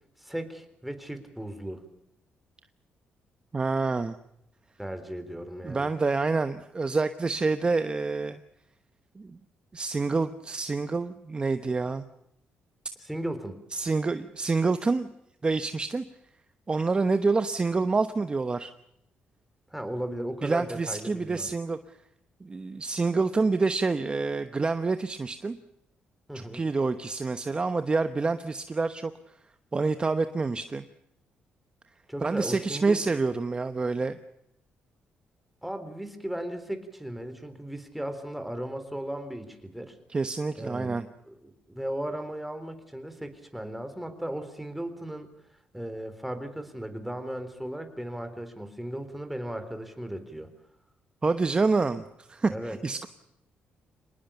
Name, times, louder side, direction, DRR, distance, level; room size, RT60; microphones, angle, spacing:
voice 1, 0.2-1.8 4.8-5.9 13.0-13.6 19.7-21.5 26.3-26.6 32.1-33.0 35.6-40.0 40.5-41.0 41.3-45.3 45.7-50.5 52.5-52.8, right 1 dB, 5° right, 8 dB, 3.9 m, -36 dB
voice 2, 3.5-4.2 5.6-8.4 9.2-9.4 9.7-12.0 13.7-15.1 15.4-16.0 16.7-18.7 20.4-21.8 22.4-25.6 26.3-29.1 29.7-30.8 32.2-34.1 40.1-41.0 51.2-53.1, right 3 dB, 25° right, 10 dB, 1.0 m, -27 dB
25.5 x 20.0 x 7.0 m, 0.79 s
cardioid pair, 95°, 4 cm